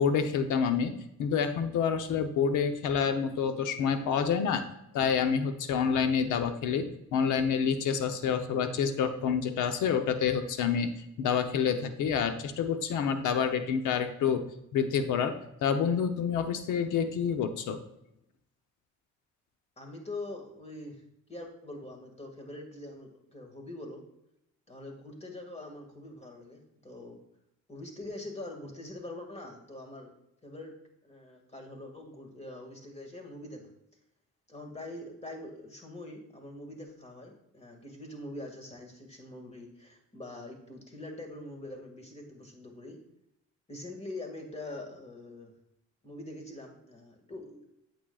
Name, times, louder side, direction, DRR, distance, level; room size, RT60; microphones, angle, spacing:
voice 1, 0.0-4.6 4.9-10.9 11.2-14.5 14.7-15.4 15.6-17.8, left 7 dB, 85° left, 8 dB, 0.8 m, -28 dB
voice 2, 19.8-21.0 21.3-24.0 24.7-27.2 27.7-30.2 30.4-30.7 31.0-33.7 34.5-43.0 43.7-45.5 46.0-47.6, left 2 dB, 20° left, 2 dB, 2.0 m, -44 dB
8.7 x 7.4 x 2.4 m, 0.81 s
cardioid pair, 90°, 30 cm